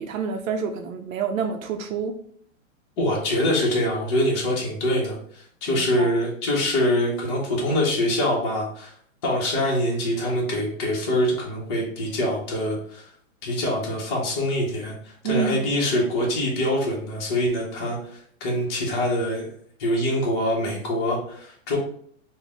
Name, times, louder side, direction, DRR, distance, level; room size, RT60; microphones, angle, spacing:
voice 1, 0.0-2.1 5.7-6.1 15.2-15.6, right 6 dB, 75° right, 5 dB, 0.6 m, -28 dB
voice 2, 3.0-8.9 9.2-13.0 13.4-19.5 19.8-21.8, left 1 dB, 20° left, -4 dB, 0.6 m, -24 dB
4.0 x 2.1 x 3.5 m, 0.62 s
hypercardioid pair, 165°, 40 cm